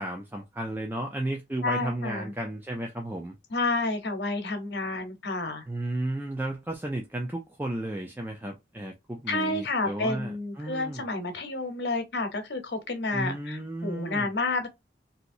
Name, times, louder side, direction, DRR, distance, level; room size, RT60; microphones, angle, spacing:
voice 1, 0.0-3.4 5.7-11.0 13.1-14.3, right 1 dB, 10° right, 0.4 m, -33 dB
voice 2, 1.6-2.3 3.5-5.6 9.3-14.7, left 3 dB, 80° left, 0.9 m, -30 dB
3.1 x 2.8 x 2.6 m
head